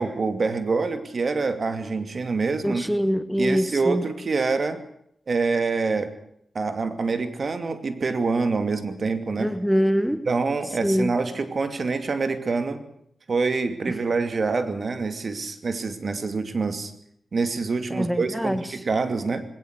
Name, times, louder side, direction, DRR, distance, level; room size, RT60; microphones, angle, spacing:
voice 1, 0.0-2.9 3.4-4.8 5.3-6.1 6.5-9.5 10.3-12.8 13.3-16.9 17.3-19.4, right 4 dB, 55° right, 9 dB, 2.6 m, -26 dB
voice 2, 2.6-4.1 9.4-10.3 10.8-11.1 13.9-14.0 17.9-18.8, equal, ahead, 12 dB, 1.2 m, -24 dB
20.0 x 17.5 x 8.2 m, 0.71 s
cardioid pair, 70°, 0 cm